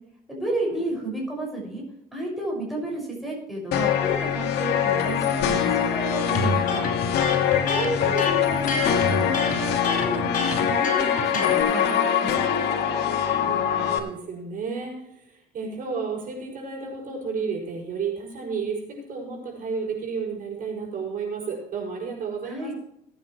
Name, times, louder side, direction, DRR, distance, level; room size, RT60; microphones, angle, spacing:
voice 1, 0.3-1.8 2.1-6.9 7.7-12.5 22.4-22.7, right 1 dB, ahead, -3 dB, 6.1 m, -31 dB
sound 1, 3.7-14.0, left 9 dB, 80° left, 1.9 m, -23 dB
Electric guitar, 6.3-11.6, left 3 dB, 50° left, 4.7 m, -28 dB
voice 2, 7.8-8.3 13.2-22.7, right 5 dB, 55° right, 0 dB, 6.2 m, -32 dB
21.0 x 9.0 x 3.2 m, 0.75 s
cardioid pair, 110°, 17 cm